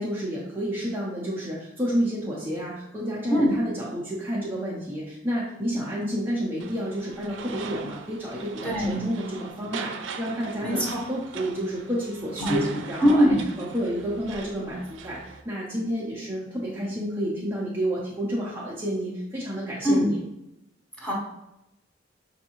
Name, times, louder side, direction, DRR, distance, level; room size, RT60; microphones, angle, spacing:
voice 1, 0.0-20.2, equal, 10° right, -7 dB, 0.6 m, -30 dB
sound 1, 6.6-15.4, right 5 dB, 90° right, 0.4 m, -40 dB
voice 2, 8.6-9.1 10.6-11.0 12.4-12.6 13.0-13.4 19.8-20.1 21.0-21.1, equal, 5° left, -4 dB, 1.0 m, -22 dB
5.2 x 2.7 x 2.9 m, 0.88 s
head